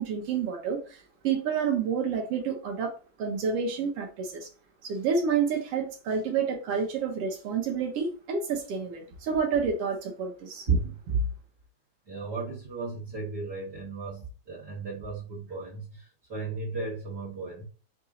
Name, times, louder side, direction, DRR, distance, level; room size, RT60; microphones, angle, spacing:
voice 1, 0.0-2.9 3.2-4.5 4.8-10.7, right 6 dB, 65° right, 1.6 m, -29 dB
voice 2, 10.7-11.3 12.1-17.6, right 3 dB, 45° right, 1.5 m, -33 dB
4.8 x 2.7 x 3.7 m
omnidirectional pair, 3.4 m